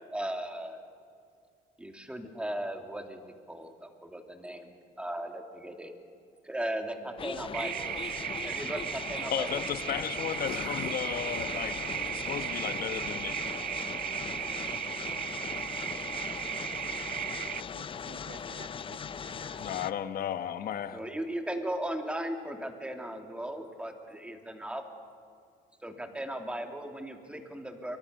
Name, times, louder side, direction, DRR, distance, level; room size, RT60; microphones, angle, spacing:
voice 1, 0.1-0.8 1.8-5.9 6.4-7.9 8.4-9.5 20.9-24.8 25.8-28.0, right 1 dB, 5° right, 4 dB, 2.8 m, -37 dB
voice 2, 7.0-7.5 13.5-15.3 17.7-19.8, right 9 dB, 85° right, 7 dB, 1.8 m, -53 dB
sound 1, 7.2-19.9, left 6 dB, 30° left, 0.6 m, -39 dB
sound 2, 7.3-13.3, left 13 dB, 75° left, 0.8 m, -47 dB
sound 3, 7.5-17.6, right 12 dB, 60° right, 0.6 m, -36 dB
voice 3, 9.3-11.8 12.1-13.4 19.6-21.0, left 9 dB, 60° left, 9 dB, 1.6 m, -34 dB
29.0 x 23.5 x 6.8 m, 2.3 s
cardioid pair, 110°, 17 cm